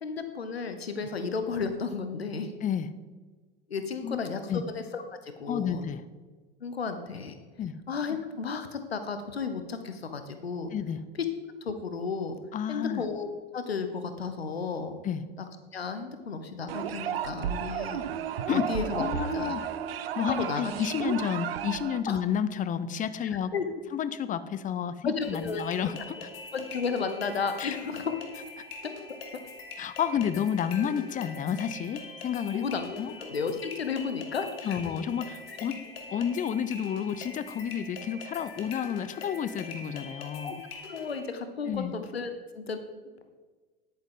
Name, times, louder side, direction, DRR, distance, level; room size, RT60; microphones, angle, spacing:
voice 1, 0.0-2.5 3.7-5.8 6.6-7.3 7.9-10.7 11.6-12.4 12.7-13.3 13.5-15.0 15.4-15.5 15.7-18.0 18.5-19.0 19.3-19.6 20.4-20.7 22.1-22.2 23.5-23.7 25.0-25.6 26.5-28.1 32.5-34.8 40.4-40.6 40.9-42.3 42.6-42.8, left 5 dB, 85° left, 8 dB, 0.9 m, -33 dB
voice 2, 4.0-4.6 5.5-6.0 7.6-7.7 10.7-11.0 12.5-13.0 15.0-15.2 18.5-18.6 18.9-19.6 20.2-23.5 23.9-26.3 27.6-27.8 29.8-32.7 33.0-33.1 34.6-35.8 36.1-40.6 41.7-41.9, left 8 dB, 25° left, 14 dB, 0.6 m, -30 dB
sound 1, 16.7-22.0, right 9 dB, 70° right, 0.7 m, -33 dB
sound 2, 25.2-41.2, left 3 dB, 70° left, 1.7 m, -43 dB
10.5 x 9.2 x 3.8 m, 1.4 s
figure-of-eight pair, 75°, 30 cm